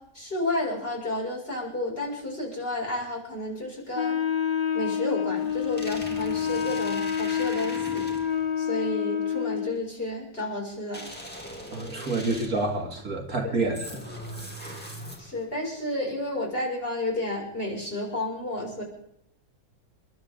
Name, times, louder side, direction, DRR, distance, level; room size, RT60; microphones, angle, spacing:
voice 1, 0.0-4.2 4.7-8.1 8.6-11.1 13.4-13.7 14.6-14.7 15.2-18.8, left 1 dB, 35° left, -3 dB, 6.5 m, -31 dB
Wind instrument woodwind instrument, 3.9-9.8, left 8 dB, 50° left, 0.4 m, -28 dB
sound 1, 5.4-8.5 10.9-12.8 13.7-15.5, equal, 5° left, 2.5 m, -40 dB
voice 2, 11.7-13.8 14.3-14.6, right 2 dB, 55° right, 2 dB, 2.4 m, -28 dB
29.5 x 12.0 x 3.8 m, 0.75 s
omnidirectional pair, 1.8 m